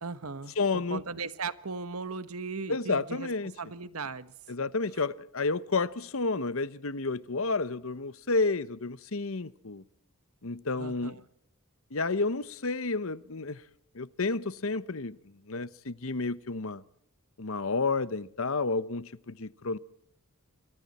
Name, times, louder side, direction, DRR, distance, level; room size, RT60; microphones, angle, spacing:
voice 1, 0.0-3.3 3.6-4.3 10.8-11.2, right 4 dB, 80° right, 1.4 m, -37 dB
voice 2, 0.6-1.0 2.7-3.5 4.5-9.8 10.4-11.2 11.9-13.6 13.9-15.2 15.5-16.8 17.4-19.8, left 3 dB, 65° left, 1.0 m, -31 dB
27.5 x 24.0 x 4.3 m
head